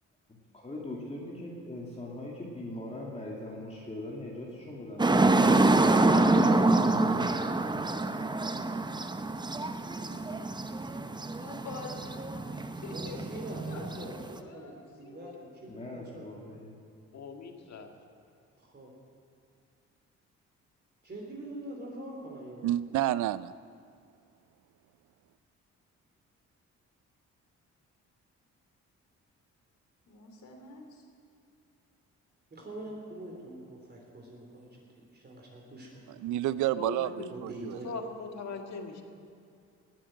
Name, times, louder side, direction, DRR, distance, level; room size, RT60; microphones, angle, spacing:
voice 1, 0.5-5.4 5.9-7.0 7.4-8.0 15.7-16.7, left 1 dB, 20° left, -3 dB, 2.5 m, -41 dB
sound 1, 5.0-14.4, right 2 dB, 15° right, 0.7 m, -26 dB
voice 2, 10.0-10.3 11.3-13.4 13.7-15.4 30.0-31.1, left 4 dB, 80° left, 3 dB, 2.9 m, -47 dB
voice 3, 12.9-16.4 18.6-18.9 21.0-22.9 32.5-36.1 37.3-37.9, right 1 dB, 35° right, -1 dB, 3.4 m, -44 dB
voice 4, 17.1-17.9 36.8-37.3 37.8-39.0, left 5 dB, 60° left, 3 dB, 2.0 m, -40 dB
voice 5, 22.6-23.5 36.2-37.8, right 14 dB, 75° right, 17 dB, 0.5 m, -29 dB
18.5 x 7.5 x 9.1 m, 2.4 s
cardioid pair, 90°, 30 cm